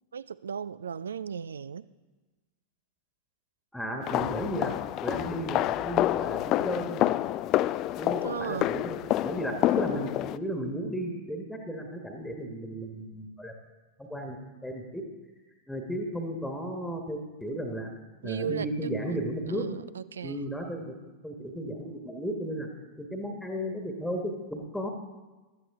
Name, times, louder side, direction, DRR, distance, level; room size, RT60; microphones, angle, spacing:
voice 1, 0.1-1.9 8.2-8.7 18.2-19.2 19.5-20.4, right 7 dB, 70° right, 18 dB, 0.4 m, -36 dB
voice 2, 3.7-4.7 5.0-7.1 8.0-13.5 14.0-14.4 14.6-15.0 15.7-17.9 18.2-19.6 20.2-22.7 23.0-24.9, equal, 5° left, 2 dB, 1.5 m, -34 dB
sound 1, 4.0-10.4, left 14 dB, 35° left, 0.3 m, -28 dB
16.0 x 12.0 x 3.6 m, 1.2 s
figure-of-eight pair, 90°, 0 cm